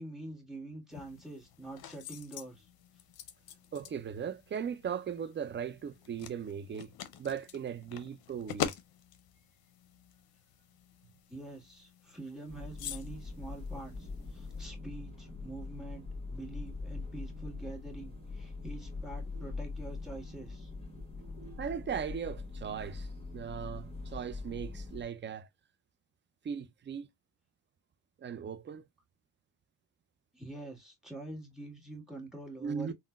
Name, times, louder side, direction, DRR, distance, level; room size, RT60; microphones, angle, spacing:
voice 1, 0.0-2.7 11.3-20.7 30.3-32.9, right 2 dB, ahead, 1.6 m, -46 dB
sound 1, 0.9-14.7, left 10 dB, 65° left, 0.6 m, -45 dB
voice 2, 3.7-6.9 7.2-8.7 21.6-23.1 23.3-25.5 26.4-27.1 28.2-28.9 32.6-32.9, right 7 dB, 30° right, 0.4 m, -38 dB
sound 2, 12.5-25.0, left 3 dB, 15° left, 1.3 m, -42 dB
3.6 x 2.1 x 2.3 m
cardioid pair, 80°, 40 cm